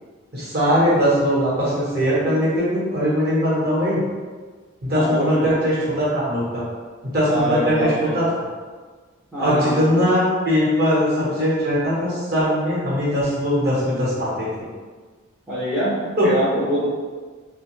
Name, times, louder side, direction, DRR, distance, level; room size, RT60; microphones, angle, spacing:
voice 1, 0.3-4.0 4.8-6.6 7.0-8.3 9.4-14.7 16.2-16.3, equal, 50° right, -8 dB, 1.1 m, -20 dB
voice 2, 4.9-5.5 7.3-8.1 9.3-9.8 15.5-16.9, equal, 5° right, -12 dB, 0.6 m, -24 dB
2.6 x 2.2 x 3.1 m, 1.4 s
head